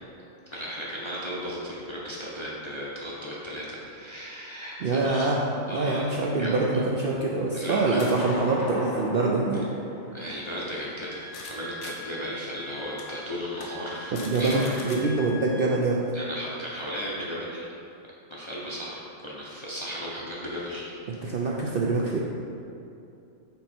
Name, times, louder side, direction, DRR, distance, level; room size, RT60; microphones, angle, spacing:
voice 1, 0.5-5.3 5.7-6.1 6.4-6.7 7.5-8.0 10.1-14.8 16.1-17.7 18.3-19.0 19.2-20.9, equal, 30° left, -6 dB, 0.6 m, -35 dB
voice 2, 4.8-5.4 5.7-9.7 14.1-16.0 21.1-22.2, right 3 dB, 60° right, -3 dB, 0.6 m, -25 dB
sound 1, 6.8-11.5 11.8-11.9 12.4-12.5 13.0-13.1 13.5-13.7 14.0-15.0, left 2 dB, 80° left, 1.2 m, -40 dB
Wind instrument woodwind instrument, 11.0-15.8, equal, 60° left, 1.0 m, -44 dB
5.4 x 4.3 x 4.3 m, 2.6 s
omnidirectional pair, 1.4 m